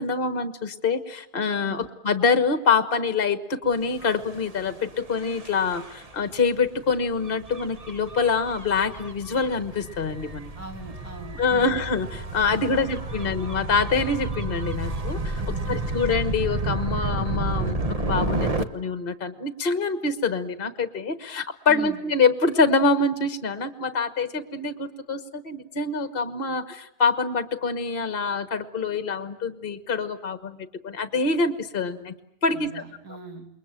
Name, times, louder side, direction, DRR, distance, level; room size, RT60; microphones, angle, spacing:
voice 1, 0.0-10.5 11.4-15.4 15.7-32.1 32.4-32.8, left 4 dB, 35° left, 10 dB, 1.5 m, -25 dB
Gull seagull / Waves surf / Siren, 3.9-18.6, right 2 dB, 25° right, 1.1 m, -31 dB
voice 2, 10.6-11.8 12.5-12.9 13.2-13.3 15.4-16.0 21.7-22.0 32.5-33.5, right 4 dB, 60° right, 4 dB, 3.6 m, -41 dB
28.5 x 22.0 x 8.9 m, 0.80 s
omnidirectional pair, 1.8 m